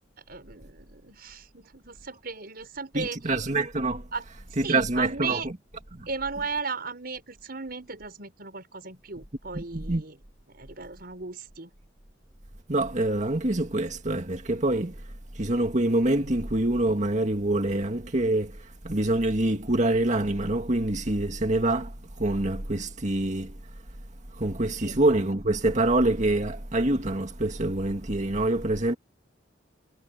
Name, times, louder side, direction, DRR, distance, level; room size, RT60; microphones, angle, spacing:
voice 1, 0.3-3.3 4.1-4.2 4.6-5.5 6.1-10.2 10.5-11.7 24.8-25.0, right 4 dB, 55° right, 6.0 m, -36 dB
voice 2, 2.9-4.1 4.6-5.5 5.9-6.1 9.5-10.0 12.7-15.0 15.3-23.6 24.3-28.9, right 2 dB, 40° right, 2.0 m, -26 dB
head